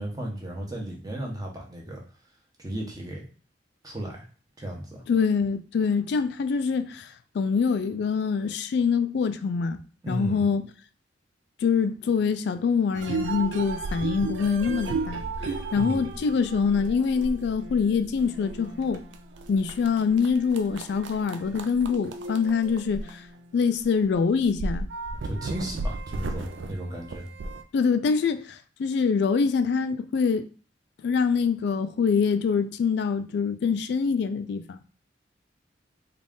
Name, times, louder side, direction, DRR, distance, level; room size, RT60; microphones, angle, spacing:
voice 1, 0.0-2.0 2.6-3.3 3.8-4.3 4.6-5.0 10.0-10.4 15.7-16.1 25.2-27.3, right 1 dB, 20° right, 0.9 m, -34 dB
voice 2, 5.1-9.8 10.1-10.6 11.6-19.0 19.5-23.2 23.5-24.9 27.7-30.5 31.0-34.8, left 5 dB, 60° left, 0.3 m, -25 dB
sound 1, 12.9-23.8 24.1-24.2 24.4-27.6, right 3 dB, 75° right, 0.4 m, -35 dB
3.8 x 2.4 x 3.6 m
head